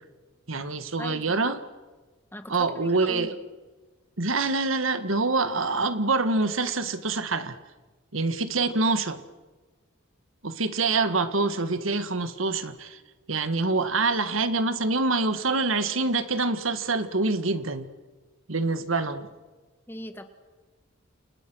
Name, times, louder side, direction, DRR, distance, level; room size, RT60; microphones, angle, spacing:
voice 1, 0.5-1.6 2.5-3.4 4.2-7.6 8.1-9.2 10.4-13.0 13.3-17.9 18.5-19.3, right 3 dB, 80° right, 10 dB, 1.8 m, -26 dB
voice 2, 1.0-1.5 2.3-3.3 19.9-20.3, left 1 dB, 10° left, 7 dB, 2.0 m, -39 dB
30.0 x 28.0 x 6.3 m, 1.3 s
head